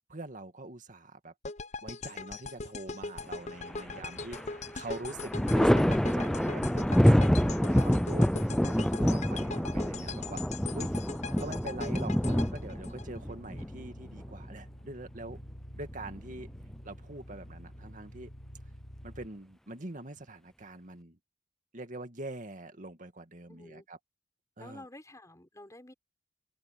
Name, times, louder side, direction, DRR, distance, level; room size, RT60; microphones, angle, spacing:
voice 1, 0.1-1.3 1.8-4.4 4.7-7.3 7.7-10.4 10.7-11.0 11.4-15.4 15.8-16.5 16.8-18.3 19.0-21.2 21.7-24.0 24.6-24.9, right 2 dB, 45° right, 2.2 m, -44 dB
sound 1, 1.4-13.6, left 4 dB, 40° left, 0.7 m, -41 dB
voice 2, 3.7-5.4 7.4-7.7 23.5-23.9 24.6-25.9, left 1 dB, 20° left, 4.7 m, -51 dB
Thunder, 3.7-4.5 4.8-14.4 15.9-16.7, equal, 5° left, 0.3 m, -27 dB
sound 2, 9.0-19.3, equal, 60° left, 6.8 m, -48 dB
open air
head